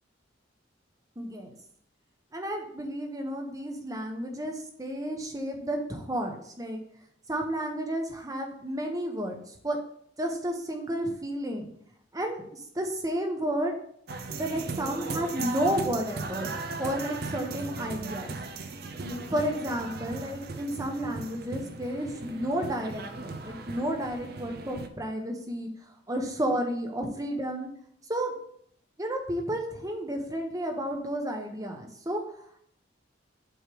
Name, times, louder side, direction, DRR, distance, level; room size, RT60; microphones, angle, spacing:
voice 1, 1.2-1.6 2.3-6.8 7.3-9.8 10.2-11.7 12.1-13.8 14.3-16.5 16.8-18.3 19.0-25.7 26.1-27.7 28.1-28.3 29.0-32.2, equal, 20° right, 3 dB, 0.9 m, -32 dB
sound 1, 14.1-24.9, right 3 dB, 55° right, 0.5 m, -37 dB
7.9 x 3.2 x 4.6 m, 0.66 s
head